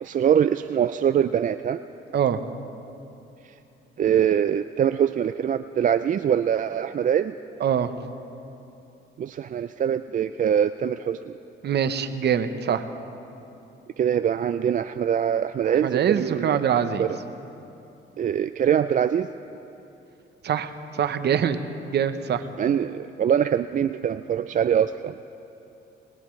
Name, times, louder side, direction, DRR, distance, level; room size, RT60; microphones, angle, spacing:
voice 1, 0.0-1.8 4.0-7.4 9.2-11.3 14.0-16.6 17.0-17.1 18.2-19.3 22.6-25.2, right 9 dB, 40° right, 10 dB, 0.4 m, -23 dB
voice 2, 7.6-7.9 11.6-12.9 15.6-17.0 20.4-21.6 21.9-22.4, right 8 dB, 55° right, 10 dB, 0.9 m, -24 dB
21.5 x 20.0 x 3.2 m, 2.9 s
cardioid pair, 90°, 20 cm